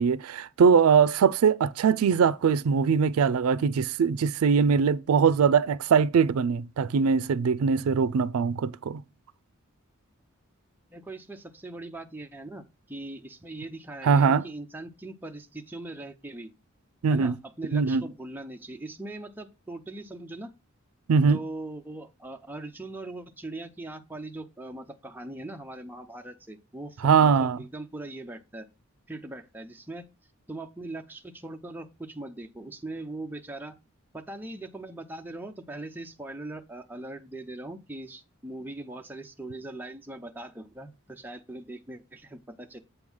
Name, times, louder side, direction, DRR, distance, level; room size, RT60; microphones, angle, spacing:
voice 1, 0.0-9.0 14.0-14.4 17.0-17.3 17.7-18.0 21.1-21.4 27.0-27.6, right 6 dB, 90° right, 0.4 m, -22 dB
voice 2, 10.9-16.5 17.1-20.5 21.3-28.7 29.1-30.1 30.5-33.8 34.1-42.8, right 2 dB, 10° right, 0.6 m, -40 dB
7.9 x 3.8 x 6.1 m
head